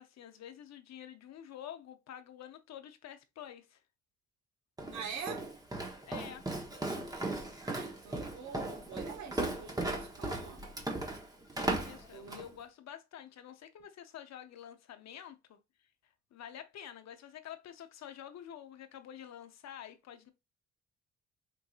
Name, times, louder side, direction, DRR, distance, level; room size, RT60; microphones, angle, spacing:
voice 1, 0.0-3.8 6.1-6.5 11.8-15.6 16.0-20.3, left 10 dB, 60° left, 0.7 m, -48 dB
Walk footsteps, 4.8-12.5, right 2 dB, 10° right, 0.9 m, -37 dB
voice 2, 4.9-5.5 7.6-10.6 12.1-12.4, right 6 dB, 65° right, 1.2 m, -45 dB
4.5 x 2.6 x 2.4 m
cardioid pair, 90°, 30 cm